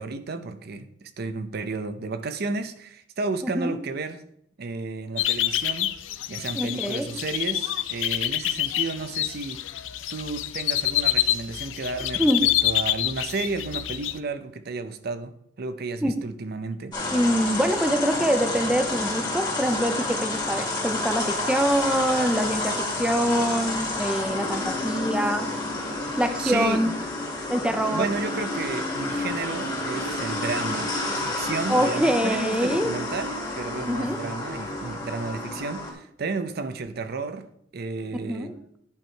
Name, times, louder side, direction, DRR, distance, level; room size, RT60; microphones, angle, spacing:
voice 1, 0.0-4.2 4.6-5.9 6.3-9.6 10.1-16.9 26.4-26.9 27.9-37.5 37.7-38.5, right 3 dB, 55° right, 0.6 m, -32 dB
sound 1, 5.2-14.2, left 13 dB, 85° left, 0.5 m, -27 dB
voice 2, 6.5-7.1 12.2-12.4 16.0-16.1 17.1-25.5 26.2-26.9 27.5-28.1 31.7-33.0 33.9-34.2 38.2-38.5, equal, 5° right, 0.6 m, -24 dB
sound 2, 16.9-35.9, left 2 dB, 25° left, 1.9 m, -30 dB
10.5 x 4.7 x 4.5 m
head